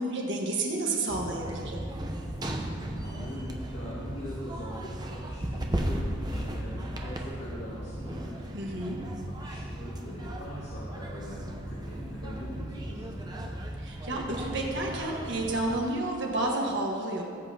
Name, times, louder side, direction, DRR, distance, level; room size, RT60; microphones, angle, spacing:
voice 1, 0.0-1.9 8.5-9.0 13.8-17.2, right 2 dB, 60° right, -1 dB, 1.4 m, -30 dB
sound 1, 1.1-15.8, right 1 dB, 20° right, 0.7 m, -36 dB
voice 2, 3.0-8.4 9.3-13.4, left 1 dB, 60° left, -9 dB, 2.3 m, -42 dB
18.5 x 8.1 x 2.9 m, 2.3 s
head